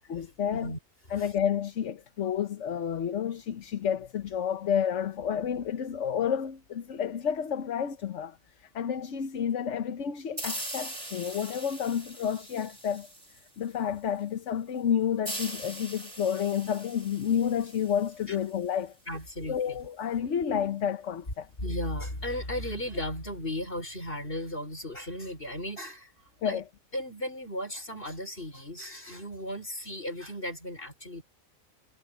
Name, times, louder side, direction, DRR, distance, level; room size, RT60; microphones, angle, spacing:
voice 1, 0.1-0.7 1.1-8.4 8.7-13.1 13.6-18.9 19.5-21.5 26.4-26.6, left 8 dB, 60° left, 1.2 m, -30 dB
sound 1, 10.4-13.8 15.2-18.7, right 1 dB, 25° right, 6.9 m, -41 dB
voice 2, 19.1-19.8 21.6-26.1 26.4-26.6 26.9-31.2, left 1 dB, 40° left, 6.2 m, -35 dB
omnidirectional pair, 1.4 m